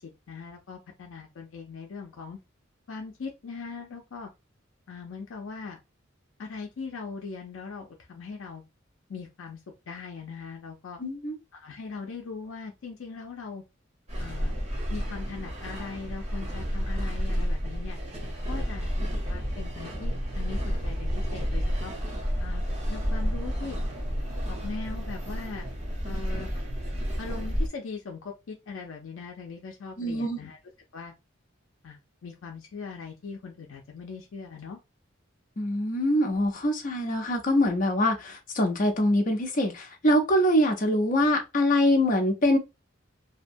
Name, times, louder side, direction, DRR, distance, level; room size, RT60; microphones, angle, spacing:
voice 1, 0.0-2.4 2.9-4.3 4.9-5.8 6.4-8.7 9.1-9.6 9.9-11.0 11.5-13.6 14.2-14.6 14.9-18.0 18.5-21.9 22.4-22.6 22.9-23.8 24.5-25.7 26.0-26.5 27.2-30.6 30.9-31.1 31.8-34.8, left 4 dB, 85° left, 0.5 m, -40 dB
voice 2, 11.0-11.4 30.0-30.4 35.6-42.6, left 1 dB, 40° left, 0.6 m, -24 dB
sound 1, 14.1-27.7, equal, 35° right, 0.9 m, -30 dB
2.7 x 2.2 x 2.6 m
head